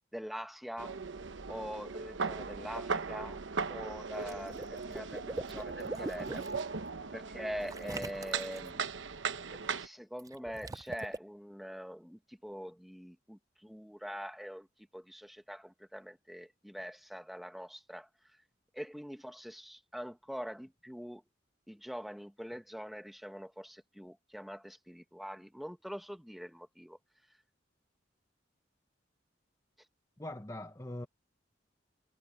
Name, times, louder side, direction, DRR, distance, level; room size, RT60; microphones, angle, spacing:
voice 1, 0.1-1.0 1.5-3.4 3.7-6.4 7.1-8.8 9.5-14.7 14.9-18.1 18.7-21.2 21.7-27.0, equal, ahead, 1.4 m, -44 dB
sound 1, 0.8-9.9, right 5 dB, 80° right, 1.0 m, -38 dB
Water / Liquid, 4.1-6.6 7.7-8.7 10.2-11.2, right 2 dB, 20° right, 0.4 m, -42 dB
voice 2, 30.2-31.1, left 1 dB, 15° left, 1.1 m, -41 dB
head